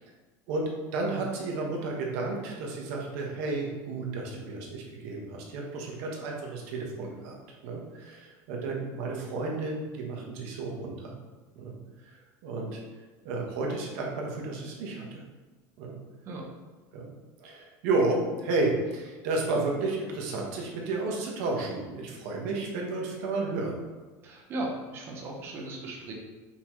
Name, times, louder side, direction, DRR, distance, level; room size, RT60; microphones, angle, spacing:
voice 1, 0.5-7.4 7.6-11.2 11.5-11.8 12.1-12.8 13.2-15.2 15.8-16.0 16.9-17.1 17.4-23.8, right 3 dB, 60° right, -1 dB, 1.0 m, -32 dB
voice 2, 24.2-26.1, right 2 dB, 25° right, 0 dB, 0.7 m, -36 dB
5.5 x 2.9 x 3.0 m, 1.2 s
cardioid pair, 175°, 9 cm